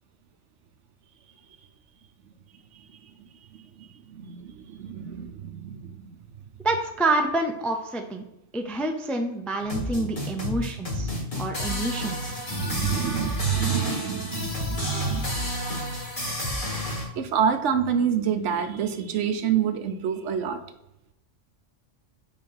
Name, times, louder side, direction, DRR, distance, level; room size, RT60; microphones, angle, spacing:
voice 1, 3.8-6.1 12.5-15.3 17.2-20.6, right 8 dB, 70° right, 8 dB, 1.0 m, -27 dB
voice 2, 6.6-8.2 8.5-12.4, right 2 dB, ahead, 3 dB, 0.4 m, -28 dB
sound 1, 9.6-17.0, left 1 dB, 40° left, 2.0 m, -30 dB
4.9 x 4.8 x 5.4 m, 0.86 s
omnidirectional pair, 1.3 m